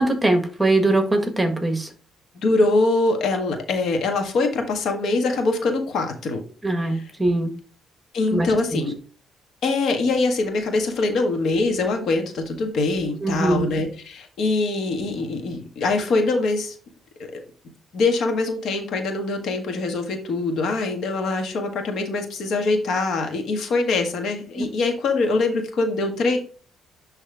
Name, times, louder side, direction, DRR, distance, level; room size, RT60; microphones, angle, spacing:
voice 1, 0.0-1.9 6.6-7.5 8.3-8.5 13.2-13.7 24.6-24.7, right 2 dB, 15° right, 6 dB, 1.5 m, -21 dB
voice 2, 2.3-6.4 6.9-7.0 8.1-9.0 9.6-16.7 17.9-26.4, left 3 dB, 70° left, 4 dB, 1.6 m, -23 dB
10.5 x 3.5 x 3.5 m, 0.39 s
cardioid pair, 90°, 0 cm